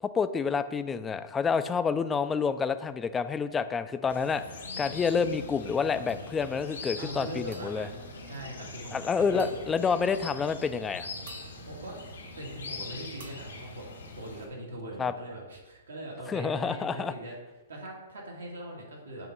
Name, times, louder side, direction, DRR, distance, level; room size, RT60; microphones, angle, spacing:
voice 1, 0.0-4.4 4.8-7.9 8.9-11.1 15.0-15.1 16.3-17.1, left 5 dB, 15° left, 11 dB, 0.3 m, -28 dB
sound 1, 4.1-14.5, left 3 dB, 85° left, 1.3 m, -42 dB
sound 2, 6.1-6.7 7.5-8.9 9.4-10.4 11.3-12.7 13.2-14.6, right 3 dB, 60° right, 0.8 m, -54 dB
voice 2, 7.0-9.5 11.6-12.0 12.4-13.9 14.2-17.4 17.7-19.3, right 1 dB, 80° right, -2 dB, 1.8 m, -41 dB
7.3 x 2.9 x 4.6 m, 1.2 s
hypercardioid pair, 125°, 0 cm